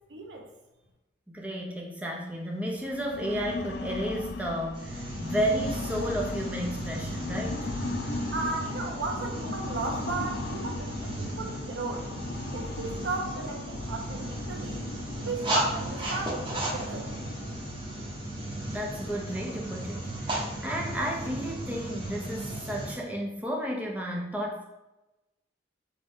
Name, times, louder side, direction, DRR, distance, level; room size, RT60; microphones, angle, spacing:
voice 1, 0.1-0.5 8.3-12.0 12.5-14.9 15.2-17.1, right 3 dB, 70° right, 1 dB, 0.8 m, -34 dB
voice 2, 1.3-7.6 18.5-24.6, equal, 10° right, -2 dB, 0.6 m, -32 dB
sound 1, 2.7-21.4, left 3 dB, 60° left, 0.3 m, -38 dB
sound 2, 4.7-22.9, right 1 dB, 30° right, 0.9 m, -36 dB
5.2 x 2.3 x 3.6 m, 0.99 s
head